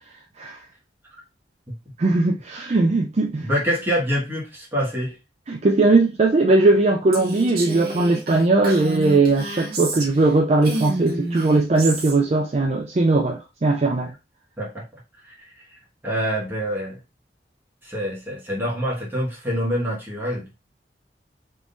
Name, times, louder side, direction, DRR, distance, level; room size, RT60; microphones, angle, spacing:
voice 1, 2.0-3.5 5.5-14.1, right 2 dB, 40° right, 0.4 m, -19 dB
voice 2, 3.4-5.2 14.6-14.8 15.3-15.5 16.0-17.0 17.8-20.5, equal, 10° right, 1.6 m, -26 dB
Female speech woman speaking, 7.1-10.3 10.6-12.2, right 2 dB, 60° right, 1.2 m, -30 dB
3.7 x 3.1 x 2.6 m
head